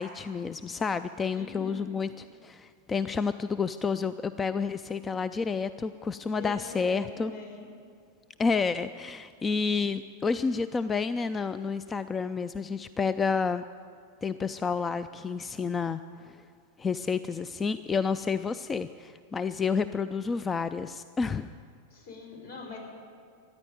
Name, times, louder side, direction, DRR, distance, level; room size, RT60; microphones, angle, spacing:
voice 1, 0.0-7.3 8.4-13.6 14.2-16.4 16.8-21.5, left 5 dB, 15° left, 13 dB, 0.4 m, -30 dB
voice 2, 1.3-1.9 6.4-7.7 21.9-22.8, left 4 dB, 65° left, -2 dB, 4.7 m, -43 dB
14.0 x 10.0 x 9.0 m, 2.2 s
figure-of-eight pair, 90°, 0 cm